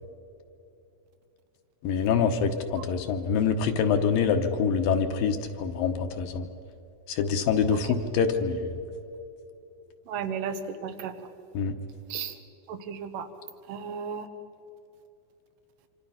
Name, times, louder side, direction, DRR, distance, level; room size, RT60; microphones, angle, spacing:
voice 1, 1.8-6.5 7.1-8.7 11.5-11.7, left 6 dB, 70° left, 6 dB, 2.5 m, -25 dB
voice 2, 10.1-11.1 12.1-12.4 12.7-13.3 13.7-14.3, right 7 dB, 90° right, 8 dB, 3.4 m, -34 dB
26.5 x 26.0 x 5.8 m, 2.8 s
omnidirectional pair, 4.6 m